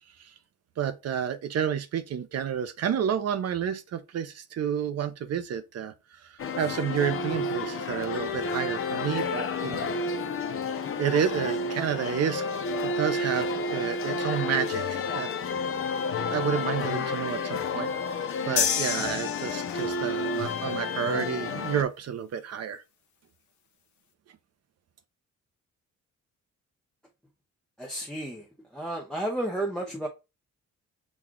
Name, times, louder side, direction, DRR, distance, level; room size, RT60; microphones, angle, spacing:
voice 1, 0.8-5.9 6.2-9.9 11.0-12.4 12.8-15.3 16.3-22.8, right 8 dB, 60° right, 0.6 m, -30 dB
sound 1, 6.4-21.8, left 3 dB, 45° left, 0.6 m, -31 dB
sound 2, 18.6-20.1, left 8 dB, 80° left, 0.8 m, -29 dB
voice 2, 27.8-30.1, right 1 dB, ahead, 0.7 m, -32 dB
6.1 x 2.3 x 3.7 m
cardioid pair, 125°, 29 cm